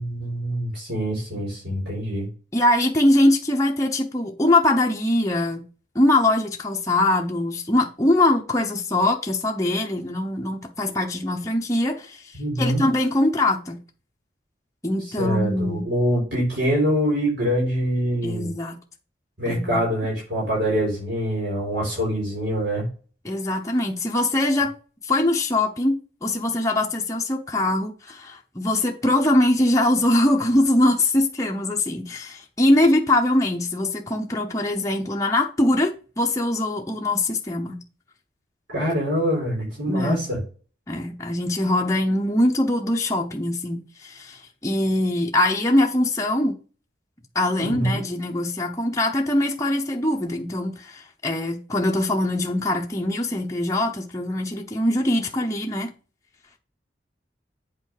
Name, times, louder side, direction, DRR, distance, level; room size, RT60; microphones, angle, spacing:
voice 1, 0.0-2.3 12.3-12.9 15.2-18.5 19.4-22.9 38.7-40.4 47.6-48.0, equal, 70° right, 4.5 m, -24 dB
voice 2, 2.5-5.6 5.9-13.8 14.8-15.9 18.2-18.8 19.4-19.8 23.2-24.8 25.0-37.8 39.9-40.3 40.9-46.6 47.3-55.9, left 1 dB, 15° left, 0.8 m, -22 dB
8.1 x 4.4 x 4.8 m
head